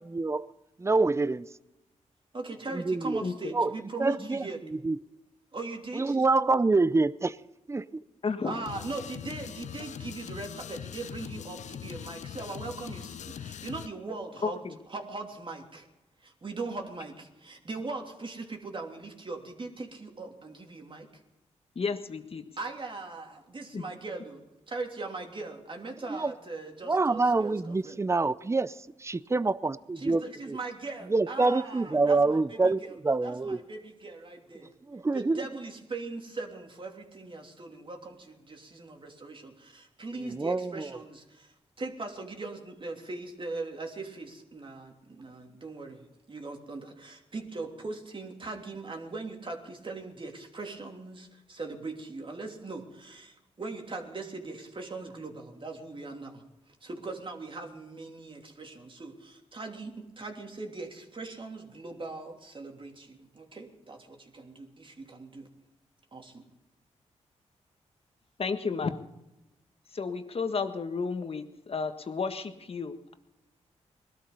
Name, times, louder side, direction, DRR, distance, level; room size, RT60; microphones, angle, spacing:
voice 1, 0.1-0.5 0.8-1.5 2.7-3.2 3.5-3.7 4.0-4.4 4.8-5.0 5.9-7.4 7.7-8.0 26.1-26.3 26.9-28.7 29.0-30.6 31.1-33.6 34.9-35.4 40.2-40.9, right 3 dB, 20° right, 0.6 m, -26 dB
voice 2, 2.3-4.6 5.5-6.2 8.4-14.6 14.9-15.9 16.2-21.1 22.6-27.9 30.0-32.9 33.2-34.7 35.1-65.5 66.1-66.5, right 3 dB, 45° right, 3.1 m, -40 dB
voice 3, 8.2-8.6 14.4-14.8 21.7-22.5 23.7-23.8 68.4-69.0 69.9-73.1, left 4 dB, 50° left, 1.6 m, -32 dB
sound 1, 8.7-13.9, left 8 dB, 70° left, 0.6 m, -41 dB
20.0 x 12.5 x 5.5 m
cardioid pair, 60°, 13 cm